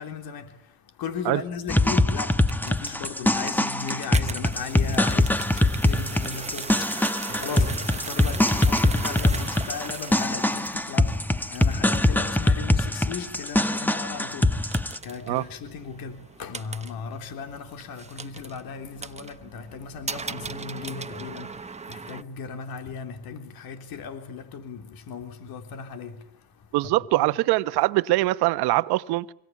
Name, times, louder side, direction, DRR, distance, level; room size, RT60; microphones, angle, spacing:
voice 1, 0.0-26.8 27.2-27.3, left 6 dB, 60° left, 3.7 m, -37 dB
sound 1, 1.7-15.0, left 1 dB, 5° left, 1.2 m, -23 dB
sound 2, 2.3-22.2, right 4 dB, 15° right, 1.1 m, -39 dB
voice 2, 26.7-29.3, right 18 dB, 70° right, 1.2 m, -23 dB
26.5 x 24.5 x 8.6 m
supercardioid pair, 95°, 40 cm